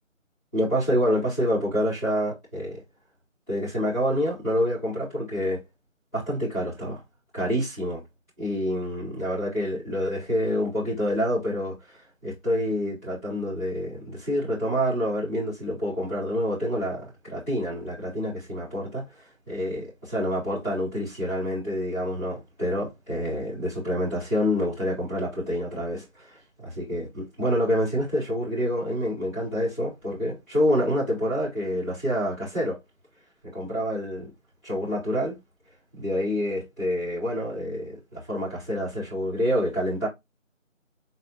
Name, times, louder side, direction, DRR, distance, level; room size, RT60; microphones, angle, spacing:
voice 1, 0.5-2.8 3.5-5.6 6.1-7.0 7.3-8.0 8.4-32.8 33.4-34.3 34.6-35.4 35.9-40.1, equal, 10° left, 2.6 m, -27 dB
4.2 x 4.2 x 2.7 m
figure-of-eight pair, 170°, 40 cm